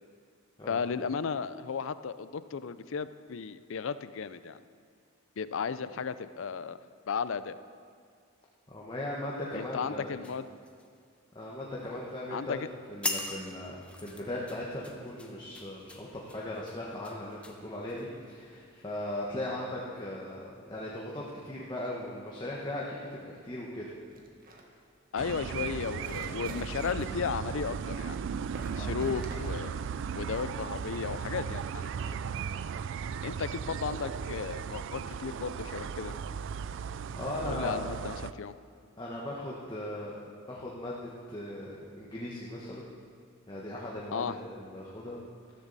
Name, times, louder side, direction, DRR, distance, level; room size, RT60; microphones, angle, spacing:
voice 1, 0.7-4.6 5.4-6.8 7.1-7.6 9.5-10.5 12.3-12.7 25.1-28.2 28.8-29.8 30.2-32.2 33.2-36.2 37.4-38.6 44.1-44.4, left 6 dB, 65° left, 14 dB, 0.5 m, -34 dB
voice 2, 8.7-10.1 11.3-12.5 12.9-23.9 28.7-28.9 37.1-37.8 39.0-40.2 40.5-42.8 43.5-45.2, left 1 dB, 20° left, -4 dB, 1.2 m, -38 dB
sound 1, 10.2-11.5 11.8-12.2 12.6-12.7 13.0-18.4 18.9-19.1, left 2 dB, 5° left, 0.9 m, -41 dB
sound 2, 24.1-31.1, right 1 dB, 45° right, 1.5 m, -49 dB
sound 3, 25.2-38.3, right 7 dB, 60° right, 0.3 m, -36 dB
13.5 x 13.5 x 4.1 m, 2.2 s
head